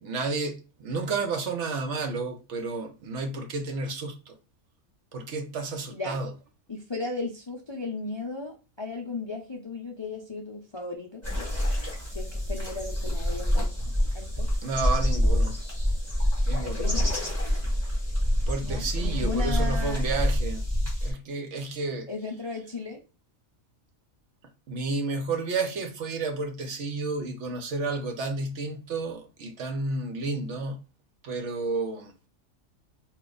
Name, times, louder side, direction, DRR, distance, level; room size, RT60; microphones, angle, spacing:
voice 1, 0.0-4.3 5.1-6.3 14.6-15.6 16.5-16.9 18.5-20.7 21.0-22.1 24.7-30.8 31.2-32.1, right 3 dB, 65° right, 1.0 m, -31 dB
voice 2, 5.9-6.2 6.7-11.2 12.1-13.7 14.1-14.5 16.6-17.2 18.6-20.0 22.1-23.0, left 3 dB, 40° left, 0.4 m, -35 dB
sound 1, 11.2-21.1, equal, 10° right, 2.1 m, -26 dB
4.5 x 2.4 x 3.8 m
omnidirectional pair, 1.4 m